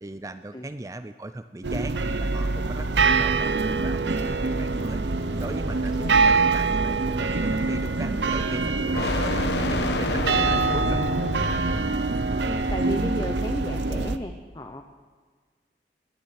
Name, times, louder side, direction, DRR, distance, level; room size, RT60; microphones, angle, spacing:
voice 1, 0.0-5.0 5.3-11.0, right 2 dB, 20° right, 10 dB, 0.4 m, -38 dB
sound 1, 1.6-14.2, right 4 dB, 85° right, 0.8 m, -24 dB
sound 2, 5.1-12.1, left 2 dB, 75° left, 1.2 m, -31 dB
voice 2, 12.4-14.8, left 1 dB, 25° left, 5 dB, 0.8 m, -34 dB
19.5 x 7.4 x 9.6 m, 1.5 s
head